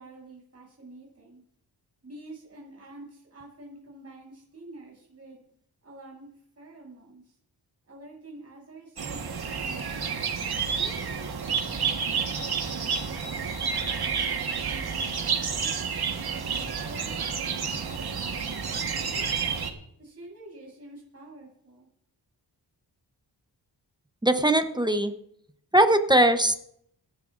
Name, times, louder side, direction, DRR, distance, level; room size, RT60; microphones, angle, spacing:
voice 1, 0.0-1.4 2.0-5.4 5.8-6.3 6.5-7.3 7.9-10.0 10.7-15.7 16.2-19.4 20.0-21.9, right 2 dB, 35° right, -4 dB, 6.9 m, -48 dB
sound 1, 9.0-19.7, right 6 dB, 60° right, 1.4 m, -30 dB
voice 2, 24.2-25.1 25.7-26.5, right 1 dB, 10° right, 7 dB, 0.8 m, -20 dB
26.0 x 11.0 x 2.5 m, 0.71 s
wide cardioid pair, 145°, 42 cm